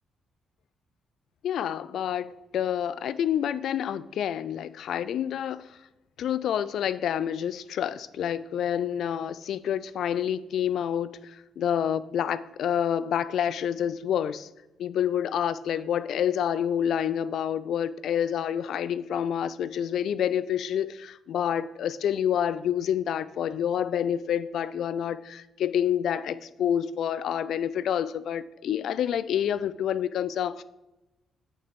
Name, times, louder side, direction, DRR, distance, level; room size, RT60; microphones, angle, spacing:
voice 1, 1.4-5.7 6.2-14.5 14.8-30.6, left 9 dB, 60° left, 16 dB, 0.3 m, -28 dB
8.5 x 6.6 x 3.5 m, 0.97 s
hypercardioid pair, 45°, 0 cm